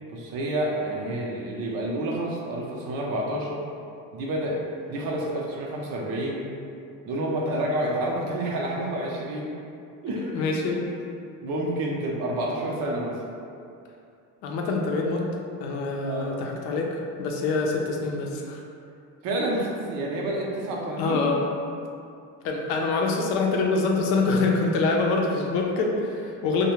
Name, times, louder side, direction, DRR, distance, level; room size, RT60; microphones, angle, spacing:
voice 1, 0.1-3.6 4.1-6.5 7.1-9.5 10.0-10.4 11.4-13.2 16.1-16.4 19.2-21.2, right 1 dB, 65° right, -2 dB, 0.6 m, -29 dB
voice 2, 10.1-10.8 14.4-15.2 15.6-16.9 17.2-18.6 21.0-21.4 22.4-26.7, left 3 dB, 70° left, 0 dB, 0.5 m, -25 dB
2.3 x 2.2 x 3.0 m, 2.5 s
supercardioid pair, 75°, 37 cm